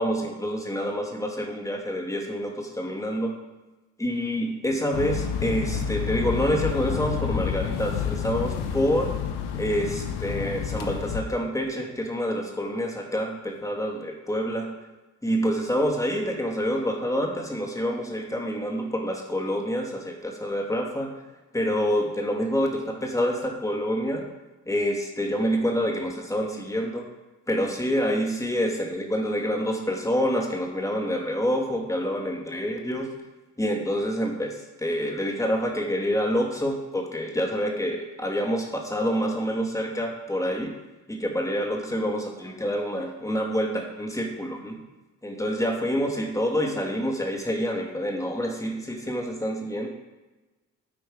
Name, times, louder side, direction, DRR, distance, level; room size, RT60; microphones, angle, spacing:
voice 1, 0.0-3.3 4.0-9.1 9.5-14.7 15.2-21.1 21.5-24.3 24.7-27.1 27.5-33.1 33.6-40.7 41.1-44.8 45.2-49.9, equal, 5° left, 1 dB, 2.3 m, -27 dB
sound 1, 4.9-11.2, left 8 dB, 65° left, 1.1 m, -29 dB
8.9 x 8.7 x 4.9 m, 1.1 s
figure-of-eight pair, 40°, 43 cm